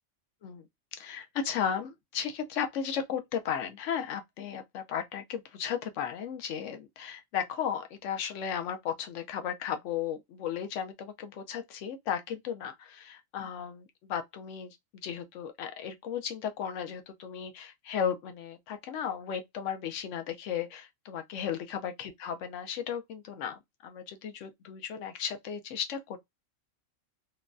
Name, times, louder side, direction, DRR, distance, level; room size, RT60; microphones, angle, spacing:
voice 1, 1.0-14.8 15.0-26.2, left 8 dB, 70° left, 0.9 m, -35 dB
3.2 x 2.2 x 2.5 m
omnidirectional pair, 1.3 m